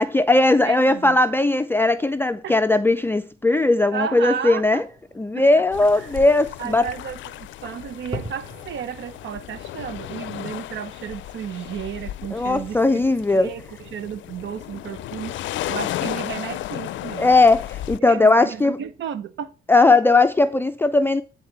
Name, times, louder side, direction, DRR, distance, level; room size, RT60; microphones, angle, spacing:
voice 1, 0.0-4.8 5.2-6.9 12.3-13.5 17.2-18.8 19.7-21.2, left 2 dB, 10° left, 0.4 m, -18 dB
voice 2, 0.6-1.2 2.4-2.6 3.9-4.9 5.3-5.6 6.0-6.1 6.6-13.0 13.3-13.6 13.9-17.3 18.0-19.5, right 8 dB, 70° right, 0.9 m, -33 dB
Fireworks, 4.4-9.8, equal, 20° right, 2.0 m, -42 dB
sound 1, 5.7-18.0, left 14 dB, 70° left, 0.5 m, -34 dB
9.6 x 4.0 x 6.6 m
cardioid pair, 90°, 20 cm